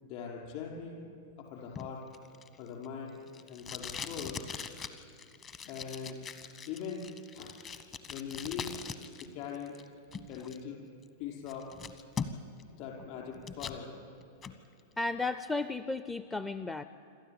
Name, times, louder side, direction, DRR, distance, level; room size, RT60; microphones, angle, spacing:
voice 1, 0.0-1.1 1.4-2.1 2.6-3.2 3.5-4.4 5.6-6.2 6.7-7.1 7.3-7.6 8.1-8.8 9.2-9.8 10.3-10.8 11.2-11.7 12.8-14.0, left 7 dB, 45° left, -1 dB, 5.2 m, -41 dB
Packing tape duct tape, 1.7-9.3 9.5-10.6 11.0-11.1 11.5-12.6 13.0-13.8 14.2-14.6, left 6 dB, 30° left, 1.2 m, -42 dB
voice 2, 15.0-16.8, left 3 dB, 10° left, 12 dB, 0.5 m, -34 dB
27.5 x 13.0 x 8.8 m, 2.4 s
figure-of-eight pair, 95°, 0 cm